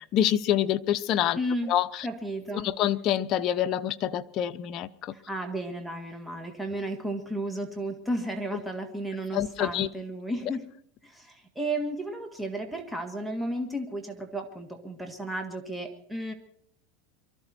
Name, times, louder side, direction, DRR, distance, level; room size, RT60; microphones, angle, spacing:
voice 1, 0.0-1.4 1.7-2.1 2.6-5.1 9.3-9.9, left 11 dB, 45° left, 11 dB, 0.8 m, -26 dB
voice 2, 1.4-1.7 2.0-2.7 5.1-10.7 11.0-16.3, right 1 dB, 5° right, 4 dB, 1.9 m, -33 dB
23.5 x 13.5 x 4.4 m, 0.65 s
supercardioid pair, 130°, 0 cm